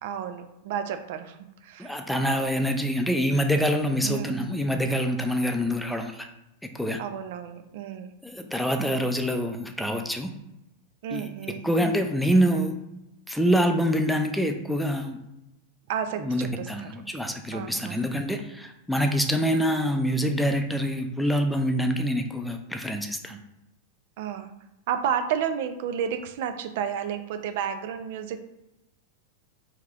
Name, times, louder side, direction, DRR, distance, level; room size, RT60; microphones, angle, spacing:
voice 1, 0.0-1.9 4.0-4.5 7.0-8.2 11.0-11.7 15.9-17.0 17.5-18.1 24.2-24.5 24.9-28.4, right 8 dB, 65° right, 8 dB, 0.5 m, -31 dB
voice 2, 1.8-6.3 6.7-7.0 8.2-10.3 11.1-11.3 11.6-12.8 13.3-15.2 16.2-23.4, equal, ahead, 5 dB, 0.6 m, -25 dB
4.6 x 3.0 x 3.6 m, 0.90 s
hypercardioid pair, 100°, 0 cm